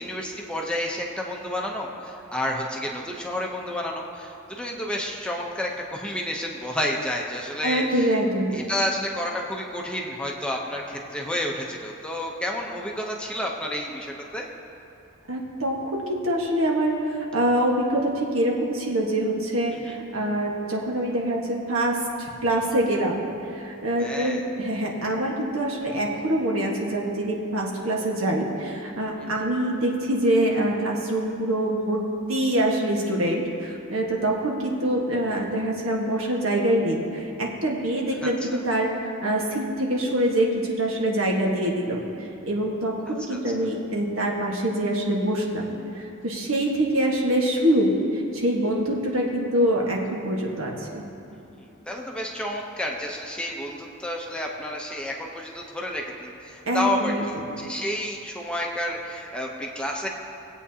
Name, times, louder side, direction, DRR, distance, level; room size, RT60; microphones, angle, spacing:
voice 1, 0.0-8.1 8.5-14.5 19.7-19.9 24.0-24.4 29.2-29.4 38.2-38.6 43.1-43.4 51.6-60.1, left 1 dB, 5° left, -1 dB, 0.8 m, -30 dB
voice 2, 7.6-8.6 15.3-23.2 23.5-32.0 32.3-42.0 42.5-47.9 48.3-51.0 56.7-57.2, right 1 dB, 70° right, -1 dB, 1.5 m, -25 dB
19.0 x 8.4 x 2.8 m, 2.7 s
head